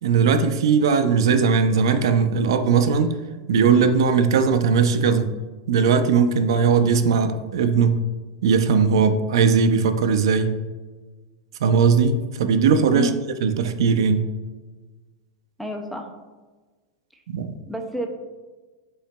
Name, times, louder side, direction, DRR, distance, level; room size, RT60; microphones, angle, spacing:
voice 1, 0.0-3.1 3.5-5.3 5.7-8.0 8.4-10.5 11.6-13.1 13.4-14.3 17.3-17.5, right 5 dB, 80° right, 8 dB, 0.4 m, -19 dB
voice 2, 15.6-16.1 17.7-18.1, equal, ahead, 3 dB, 0.3 m, -28 dB
5.5 x 3.8 x 2.2 m, 1.3 s
supercardioid pair, 175°, 3 cm